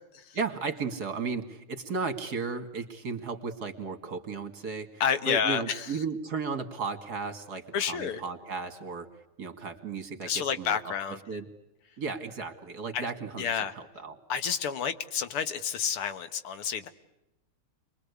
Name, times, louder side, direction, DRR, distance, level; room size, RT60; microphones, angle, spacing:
voice 1, 0.3-9.1 9.4-10.9 11.3-11.5 12.0-14.2, right 4 dB, 45° right, 8 dB, 2.6 m, -35 dB
voice 2, 5.0-5.9 7.7-8.2 10.2-11.2 12.9-13.0 13.4-13.7 14.3-16.9, left 7 dB, 85° left, 10 dB, 2.3 m, -30 dB
29.5 x 22.0 x 8.4 m, 0.91 s
omnidirectional pair, 2.4 m